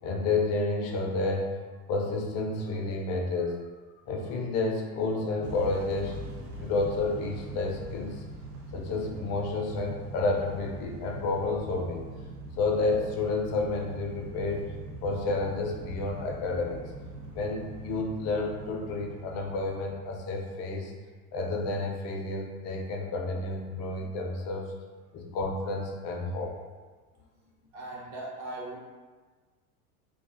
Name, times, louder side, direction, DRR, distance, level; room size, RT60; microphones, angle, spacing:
voice 1, 0.0-1.5 1.9-3.5 4.1-6.2 6.6-8.2 8.7-12.1 12.6-14.7 15.0-16.8 17.3-20.9 21.3-24.7 25.1-26.6, left 3 dB, 35° left, 1 dB, 0.4 m, -30 dB
Motor vehicle (road) / Engine starting / Accelerating revving vroom, 5.4-20.4, right 1 dB, 85° right, 0.6 m, -43 dB
voice 2, 27.7-28.8, right 2 dB, 50° right, -4 dB, 0.8 m, -39 dB
2.4 x 2.3 x 2.4 m, 1.4 s
hypercardioid pair, 90°, 45 cm